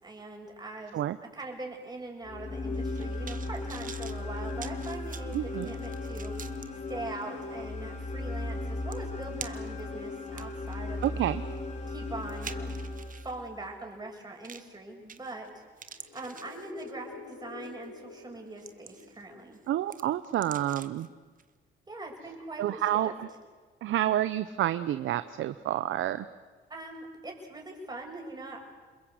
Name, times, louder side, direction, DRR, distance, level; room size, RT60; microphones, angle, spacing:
voice 1, 0.0-1.0 1.3-11.3 11.9-12.8 13.2-19.6 21.9-22.6 22.9-23.1 26.7-28.6, right 2 dB, 20° right, 1 dB, 6.4 m, -42 dB
sound 1, 2.2-13.6, left 2 dB, 35° left, 4.1 m, -36 dB
sound 2, 2.7-6.7 7.2-7.3 8.5-8.6 8.9-9.8 10.3-13.4 14.4-14.8 15.1-15.5 15.8-17.1 17.6-17.8 18.3-19.2 19.5-21.1 21.4-21.5, right 6 dB, 40° right, 1.5 m, -46 dB
voice 2, 5.3-5.7 11.0-11.4 19.7-21.1 22.6-23.3 23.8-26.3, right 12 dB, 75° right, 13 dB, 0.8 m, -29 dB
sound 3, 15.9-19.7, left 5 dB, 75° left, 7.2 m, -48 dB
28.5 x 21.5 x 8.1 m, 1.4 s
cardioid pair, 90°, 20 cm